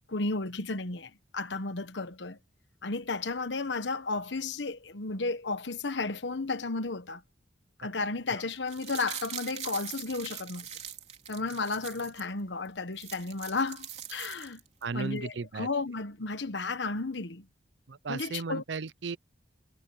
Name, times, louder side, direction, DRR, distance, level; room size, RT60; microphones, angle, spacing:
voice 1, 0.1-2.4 2.8-7.2 7.8-10.7 11.3-14.6 14.9-17.5 18.1-18.6, left 3 dB, 75° left, 1.2 m, -33 dB
sound 1, 8.6-12.3 12.7-12.8 12.9-14.8 15.2-15.3, right 9 dB, 40° right, 3.3 m, -42 dB
voice 2, 14.8-15.7 17.9-19.2, right 4 dB, 75° right, 0.6 m, -35 dB
head